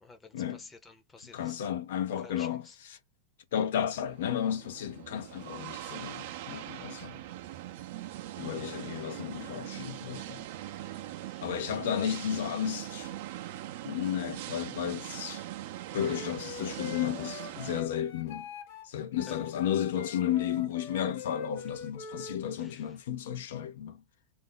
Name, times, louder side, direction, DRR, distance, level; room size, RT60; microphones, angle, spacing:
voice 1, 0.0-1.6 2.2-2.8 9.1-9.4 11.2-11.6 19.3-19.5 22.6-22.9, left 4 dB, 10° left, 0.6 m, -52 dB
voice 2, 1.3-3.0 3.5-7.2 8.4-10.4 11.4-13.1 13.8-15.4 15.9-18.5 18.8-24.0, left 9 dB, 80° left, 0.5 m, -33 dB
sound 1, 3.8-17.8, right 13 dB, 65° right, 0.5 m, -41 dB
Wind instrument woodwind instrument, 15.9-22.4, left 6 dB, 60° left, 1.0 m, -44 dB
2.5 x 2.1 x 3.7 m
supercardioid pair, 145°, 0 cm